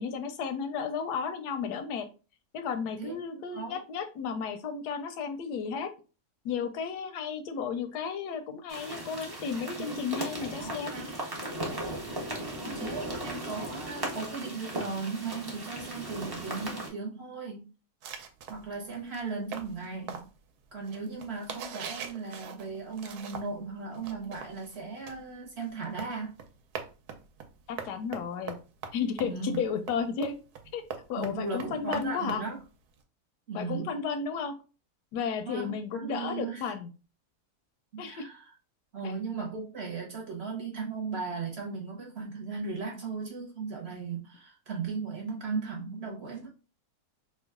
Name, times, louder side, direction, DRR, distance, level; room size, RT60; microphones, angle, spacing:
voice 1, 0.0-2.1 2.5-5.9 6.4-11.0 12.7-12.9 27.7-28.6 28.9-30.4 30.7-30.8 31.1-32.4 33.5-34.5 35.1-36.9 38.0-38.3 39.0-39.1, left 6 dB, 90° left, 8 dB, 1.2 m, -33 dB
voice 2, 3.0-3.8 9.8-10.0 10.6-11.1 12.5-17.6 18.5-20.3 20.7-26.4 29.2-29.6 31.2-32.6 33.5-33.9 35.5-36.7 37.9-38.5 38.9-46.5, right 4 dB, 50° right, 0 dB, 0.9 m, -37 dB
sound 1, 8.7-16.9, right 1 dB, 25° right, 0.5 m, -37 dB
sound 2, 18.0-23.7 23.9-33.0, right 7 dB, 75° right, 1.1 m, -43 dB
3.0 x 2.3 x 3.5 m, 0.33 s
omnidirectional pair, 1.7 m